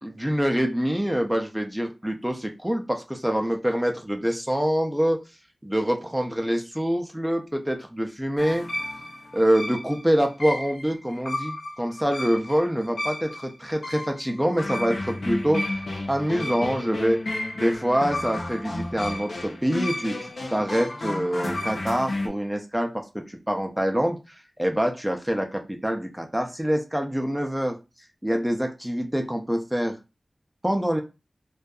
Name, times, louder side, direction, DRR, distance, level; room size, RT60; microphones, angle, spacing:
voice 1, 0.0-5.2 5.6-8.7 9.3-15.8 16.1-17.2 17.6-24.2 24.6-27.8 28.2-30.0 30.6-31.0, equal, 5° right, 3 dB, 0.4 m, -25 dB
sound 1, 8.4-22.3, left 2 dB, 85° left, 0.5 m, -32 dB
2.6 x 2.2 x 2.3 m, 0.27 s
wide cardioid pair, 65°, 0 cm